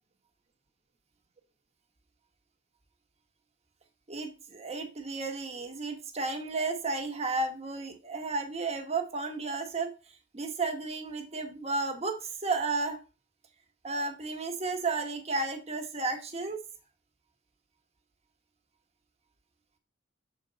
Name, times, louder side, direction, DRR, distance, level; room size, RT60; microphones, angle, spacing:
voice 1, 4.1-9.9 10.3-13.0 13.8-16.6, right 3 dB, 35° right, 1.2 m, -33 dB
6.8 x 4.5 x 4.0 m
head